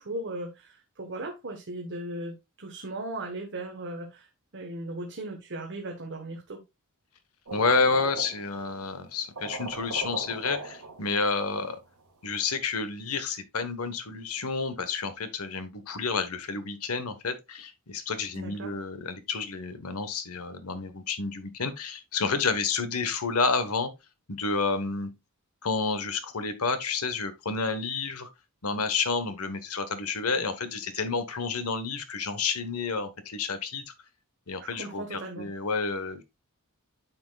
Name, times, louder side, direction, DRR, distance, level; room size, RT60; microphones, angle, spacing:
voice 1, 0.0-4.3 4.5-6.6 18.3-18.7 34.6-35.5, right 1 dB, 55° right, 1.3 m, -37 dB
voice 2, 7.5-11.8 12.2-23.9 24.3-25.1 25.6-28.3 28.6-33.9 34.5-36.2, left 4 dB, 75° left, 1.2 m, -30 dB
sound 1, 7.5-8.8 9.1-9.2 9.4-11.6, right 3 dB, 80° right, 1.9 m, -39 dB
9.6 x 5.8 x 2.3 m
head